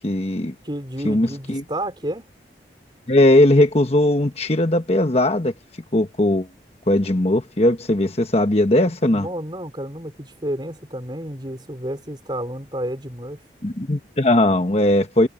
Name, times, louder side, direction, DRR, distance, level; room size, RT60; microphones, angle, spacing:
voice 1, 0.0-0.5 1.0-1.6 3.1-5.5 5.9-6.5 6.9-9.3 13.6-15.3, left 1 dB, 35° left, 1.2 m, -18 dB
voice 2, 0.6-2.3 9.1-13.4, right 1 dB, 25° right, 4.9 m, -31 dB
head